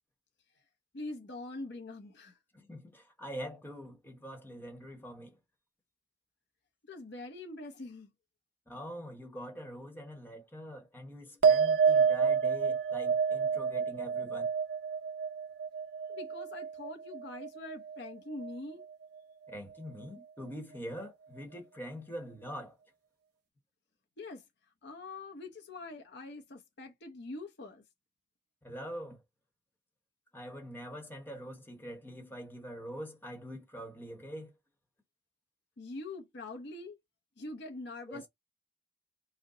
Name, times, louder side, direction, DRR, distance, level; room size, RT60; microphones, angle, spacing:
voice 1, 0.9-2.4 6.9-8.1 16.1-18.9 24.2-24.4 24.8-27.8 35.8-37.0 37.4-38.3, left 2 dB, 55° left, 0.7 m, -44 dB
voice 2, 2.5-5.4 8.7-14.5 19.5-22.8 28.6-29.2 30.3-34.5 38.1-38.3, equal, 10° left, 1.1 m, -44 dB
sound 1, 11.4-18.1 18.4-19.0, right 6 dB, 55° right, 0.8 m, -29 dB
3.9 x 2.1 x 3.7 m
head